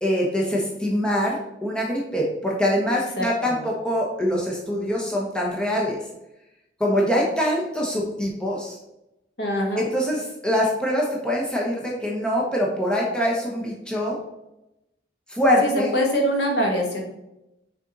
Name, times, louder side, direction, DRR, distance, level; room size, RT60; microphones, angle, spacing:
voice 1, 0.0-6.0 6.8-8.8 9.8-14.2 15.3-15.9, equal, 5° left, -3 dB, 1.0 m, -24 dB
voice 2, 3.2-3.6 9.4-9.9 15.6-17.0, equal, 60° left, 0 dB, 1.5 m, -24 dB
6.3 x 4.4 x 4.1 m, 0.90 s
head